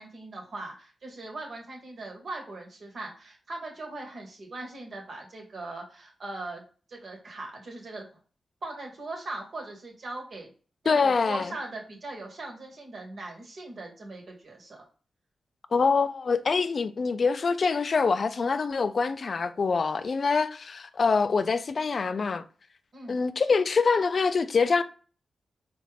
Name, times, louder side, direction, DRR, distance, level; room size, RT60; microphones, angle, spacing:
voice 1, 0.0-6.6 6.9-8.1 8.6-10.5 10.8-14.8 22.9-23.2, right 2 dB, 65° right, 1.3 m, -40 dB
voice 2, 10.9-11.5 15.7-22.4 23.1-24.8, left 4 dB, 60° left, 0.4 m, -25 dB
4.1 x 2.4 x 3.3 m
supercardioid pair, 45°, 0 cm